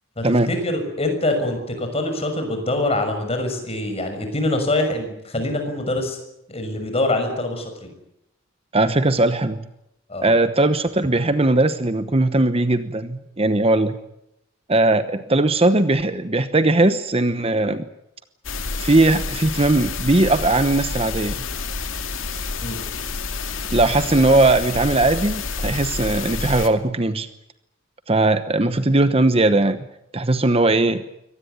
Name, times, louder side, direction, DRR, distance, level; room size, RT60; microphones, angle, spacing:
voice 1, 0.2-6.2 6.5-7.9 10.1-10.3 22.6-22.8, left 2 dB, 30° left, 6 dB, 6.3 m, -24 dB
voice 2, 8.7-9.6 10.2-14.0 14.7-17.8 18.8-21.3 23.7-27.3 28.1-29.8 30.1-31.0, right 2 dB, 30° right, 11 dB, 1.0 m, -19 dB
sound 1, 18.4-26.7, left 4 dB, 75° left, 2.4 m, -29 dB
24.0 x 18.5 x 9.4 m, 0.84 s
head